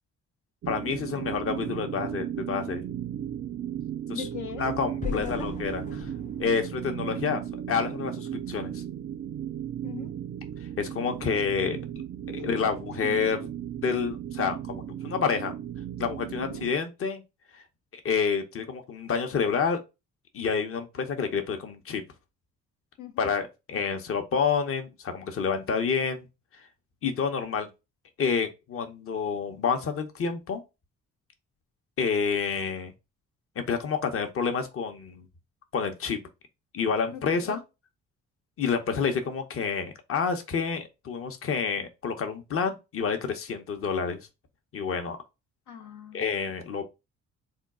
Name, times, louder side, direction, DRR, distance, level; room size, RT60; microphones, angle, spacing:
sound 1, 0.6-16.7, right 10 dB, 40° right, 0.4 m, -35 dB
voice 1, 0.7-2.8 4.1-4.3 4.6-6.1 6.4-7.4 7.7-8.8 10.8-11.8 12.4-13.4 13.8-15.5 16.0-17.2 17.9-19.8 20.3-22.0 23.2-26.3 27.0-27.7 28.2-30.6 32.0-32.9 33.6-35.3 35.7-36.2 36.7-37.6 38.6-44.2 44.7-45.2 46.1-46.8, left 5 dB, 45° left, 0.8 m, -28 dB
voice 2, 4.1-4.7 5.0-5.6 9.8-10.2 12.4-13.2 16.4-16.7 23.0-23.3 37.1-37.6 45.7-46.3, left 9 dB, 75° left, 0.8 m, -40 dB
sound 2, 5.0-8.0, left 6 dB, 25° left, 0.4 m, -39 dB
3.6 x 2.3 x 3.6 m
cardioid pair, 90°, 30 cm